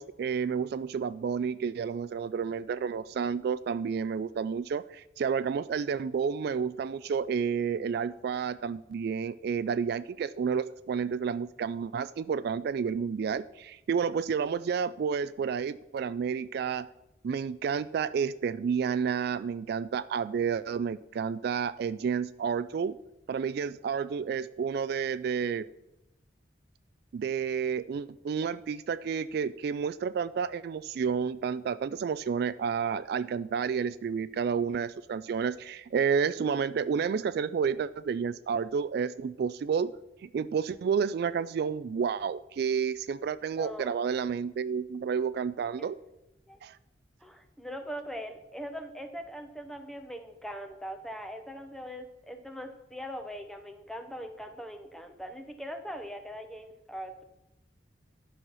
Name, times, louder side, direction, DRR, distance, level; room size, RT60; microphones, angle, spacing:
voice 1, 0.0-16.9 17.2-23.0 23.3-25.7 27.1-39.9 40.2-46.0 46.6-46.8, right 6 dB, 60° right, 15 dB, 0.3 m, -30 dB
voice 2, 43.6-44.0 45.8-45.9 46.5-46.6 47.2-57.2, equal, ahead, 6 dB, 0.9 m, -41 dB
10.5 x 5.7 x 6.2 m, 0.89 s
head